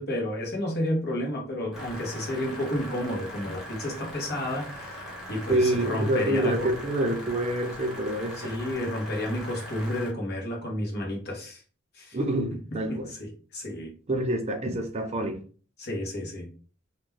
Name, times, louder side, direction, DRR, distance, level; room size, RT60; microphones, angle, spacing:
voice 1, 0.0-6.7 8.4-11.6 11.9-12.2 12.7-13.9 15.8-16.5, left 1 dB, 55° left, 1.0 m, -31 dB
sound 1, 1.7-10.1, equal, ahead, 0.9 m, -40 dB
voice 2, 5.5-8.5 12.1-13.1 14.1-15.4, right 1 dB, 30° right, 0.5 m, -27 dB
2.5 x 2.2 x 3.3 m
head